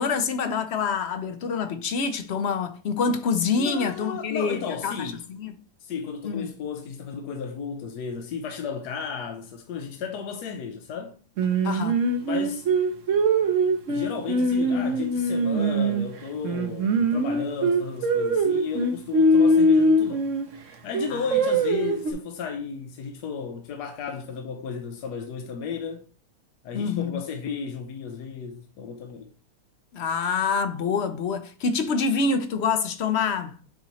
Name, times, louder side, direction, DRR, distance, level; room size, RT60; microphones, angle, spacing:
voice 1, 0.0-5.5 6.2-6.5 11.6-12.0 21.1-21.2 26.7-27.2 29.9-33.5, left 5 dB, 60° left, 0.7 m, -26 dB
voice 2, 3.6-5.3 5.8-11.2 12.2-12.7 13.9-20.3 20.8-26.0 26.6-29.3, left 6 dB, 85° left, 1.3 m, -34 dB
Singing, 11.4-16.0 16.4-20.4 20.9-22.1, right 1 dB, 55° right, 1.1 m, -22 dB
7.6 x 3.0 x 4.1 m
omnidirectional pair, 1.7 m